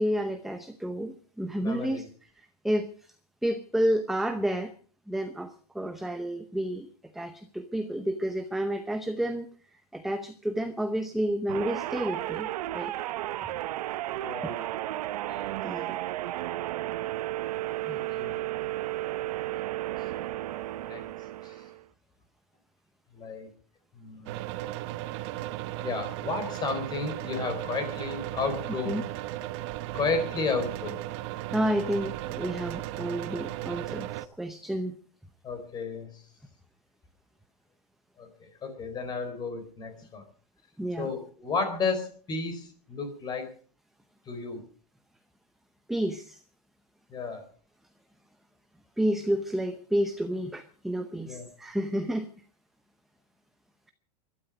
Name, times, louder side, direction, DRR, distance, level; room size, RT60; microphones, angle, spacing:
voice 1, 0.0-2.0 2.4-2.9 3.4-4.7 5.1-6.9 7.1-9.5 9.9-12.5 12.7-12.9 14.4-14.5 15.6-16.0 28.8-29.0 31.5-35.0 40.8-41.1 45.9-46.4 49.0-52.3, right 1 dB, ahead, 8 dB, 0.7 m, -30 dB
voice 2, 1.6-2.1 14.2-14.7 15.3-15.5 17.8-18.4 19.4-19.7 20.1-20.3 20.8-21.1 21.4-21.6 23.1-23.5 23.9-24.6 25.8-29.1 29.9-31.0 35.4-36.2 38.2-40.2 41.0-43.5 44.3-44.6 47.1-47.4 51.3-51.5, left 4 dB, 20° left, 8 dB, 4.0 m, -33 dB
sound 1, 11.5-21.8, right 15 dB, 75° right, 0.8 m, -33 dB
sound 2, 24.3-34.3, right 15 dB, 45° right, 0.9 m, -36 dB
20.5 x 12.5 x 5.1 m, 0.43 s
supercardioid pair, 155°, 20 cm